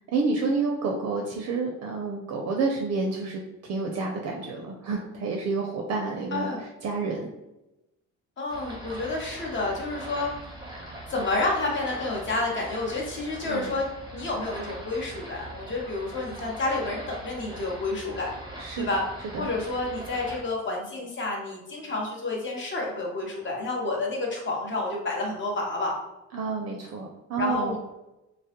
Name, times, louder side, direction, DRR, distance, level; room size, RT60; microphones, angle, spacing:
voice 1, 0.1-7.3 13.5-13.7 18.6-18.9 19.3-19.5 26.3-27.8, right 4 dB, 55° right, 1 dB, 0.4 m, -29 dB
voice 2, 6.3-6.6 8.4-10.3 11.1-13.9 14.1-18.3 18.8-19.0 19.4-25.9 27.4-27.8, left 2 dB, 40° left, -2 dB, 0.8 m, -29 dB
sound 1, 8.5-20.4, right 1 dB, 15° right, 0.6 m, -41 dB
2.2 x 2.0 x 2.8 m, 0.95 s
cardioid pair, 90°, 30 cm